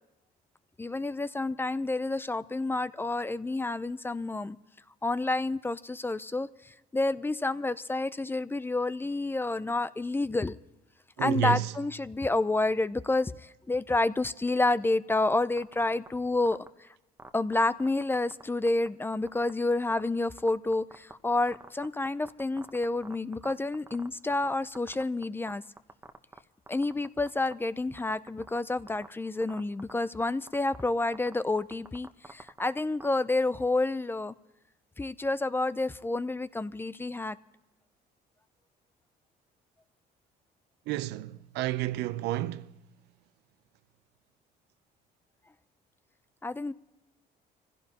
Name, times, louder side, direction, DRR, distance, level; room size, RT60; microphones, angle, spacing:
voice 1, 0.8-4.6 5.0-10.6 11.2-16.9 17.3-25.6 26.7-34.3 35.0-37.4 46.4-46.7, left 2 dB, 15° left, 0.4 m, -29 dB
voice 2, 11.2-11.7 40.9-42.7, right 15 dB, 80° right, 0.6 m, -30 dB
sound 1, 15.6-16.1 16.5-16.7 17.2-18.4 18.7-18.9 19.3-19.5 19.9-20.0 20.4-21.1 21.5-24.5 24.7-25.5 25.8-26.4 26.7-27.5 28.0-28.6 28.9-29.1 29.4-29.9 30.2-30.3 30.5-30.8 31.1-31.3 31.6-33.1, right 2 dB, 10° right, 1.0 m, -45 dB
25.5 x 16.0 x 2.9 m
cardioid pair, 110°, 17 cm